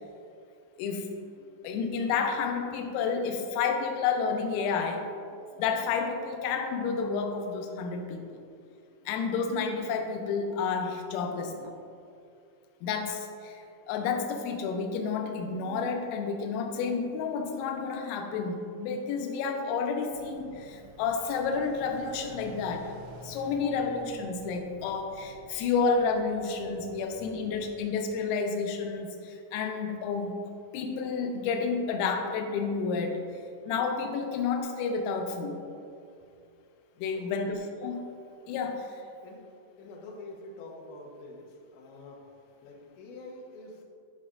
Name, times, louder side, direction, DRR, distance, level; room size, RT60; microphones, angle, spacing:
voice 1, 0.8-1.1 1.6-5.1 5.6-8.2 9.1-11.7 12.8-13.6 13.9-22.9 23.2-30.3 30.7-33.2 33.7-35.6 37.0-38.0 38.5-38.9, left 5 dB, 90° left, 4 dB, 3.3 m, -30 dB
sound 1, 20.1-27.9, right 1 dB, 80° right, 2.8 m, -51 dB
voice 2, 37.1-37.5 39.2-39.4 39.8-42.2 42.6-43.8, left 2 dB, 75° left, -3 dB, 3.1 m, -46 dB
12.5 x 5.2 x 2.5 m, 2.5 s
omnidirectional pair, 5.9 m